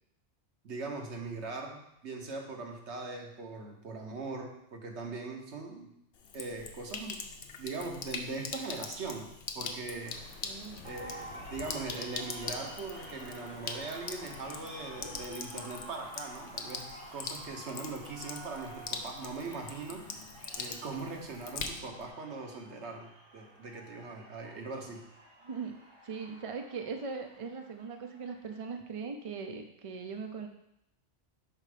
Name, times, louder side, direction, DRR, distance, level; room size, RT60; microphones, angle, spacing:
voice 1, 0.6-5.9 6.3-7.2 7.6-9.3 9.5-10.2 10.8-20.1 20.5-25.0, right 3 dB, 70° right, 2 dB, 1.3 m, -40 dB
Sink (filling or washing), 6.1-22.1, left 5 dB, 55° left, 0.7 m, -43 dB
sound 1, 10.0-15.3, left 5 dB, 90° left, 1.0 m, -51 dB
voice 2, 10.4-10.9 25.4-25.8 26.0-30.5, right 5 dB, 40° right, 5 dB, 0.5 m, -40 dB
sound 2, 10.8-28.6, right 1 dB, 90° right, 1.6 m, -50 dB
5.7 x 4.3 x 5.0 m, 0.79 s
omnidirectional pair, 1.2 m